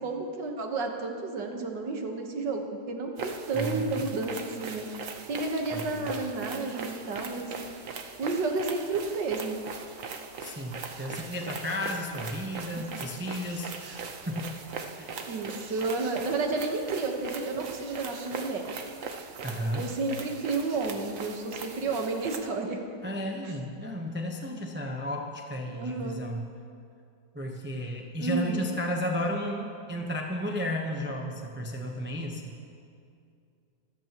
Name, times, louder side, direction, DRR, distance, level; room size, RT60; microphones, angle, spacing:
voice 1, 0.0-4.8 5.3-7.5 8.2-9.6 15.3-18.7 19.7-22.8 23.4-23.5 25.7-26.2 28.2-28.8, right 3 dB, 80° right, 3 dB, 2.0 m, -31 dB
sound 1, 3.2-22.4, right 5 dB, 55° right, 1.2 m, -40 dB
voice 2, 3.5-4.0 5.7-6.1 10.4-14.5 15.0-15.1 19.4-19.9 23.0-26.4 27.3-32.5, equal, 10° right, 0 dB, 0.6 m, -33 dB
24.0 x 13.5 x 3.0 m, 2.4 s
omnidirectional pair, 1.9 m